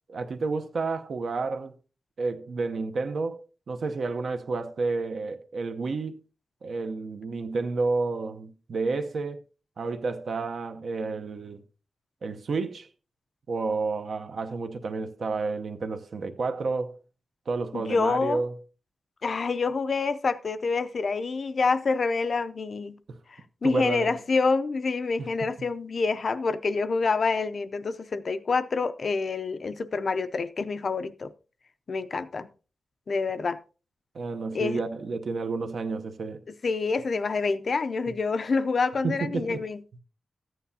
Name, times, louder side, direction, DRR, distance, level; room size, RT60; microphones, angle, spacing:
voice 1, 0.1-1.7 2.2-3.4 3.7-6.2 6.6-9.4 9.8-11.6 12.2-12.9 13.5-17.0 17.5-18.6 23.1-23.2 23.6-24.1 25.2-25.3 25.6-25.7 34.1-36.4 38.1-38.2 39.0-39.6, right 3 dB, 60° right, 0.8 m, -30 dB
voice 2, 17.7-18.4 19.2-23.0 23.6-31.3 31.9-32.5 33.1-33.6 34.5-34.8 36.6-40.0, left 4 dB, 45° left, 0.5 m, -27 dB
14.0 x 9.2 x 2.7 m
wide cardioid pair, 170°, 0 cm